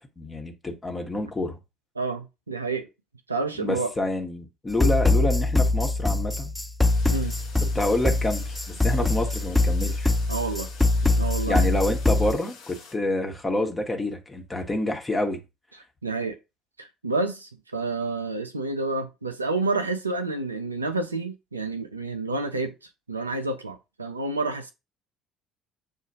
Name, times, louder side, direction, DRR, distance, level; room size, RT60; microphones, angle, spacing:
voice 1, 0.2-1.6 3.6-6.5 7.7-10.1 11.5-15.4, left 1 dB, 20° left, 1.1 m, -28 dB
voice 2, 2.0-2.9 3.3-3.9 7.1-7.3 10.3-10.7 11.2-11.8 16.0-16.4 16.8-22.7 23.1-24.7, right 3 dB, 85° right, 0.4 m, -29 dB
sound 1, 4.7-12.3, left 2 dB, 5° left, 0.4 m, -23 dB
sound 2, 6.8-12.9, left 5 dB, 65° left, 1.0 m, -48 dB
7.2 x 2.4 x 2.7 m
figure-of-eight pair, 55°, 0 cm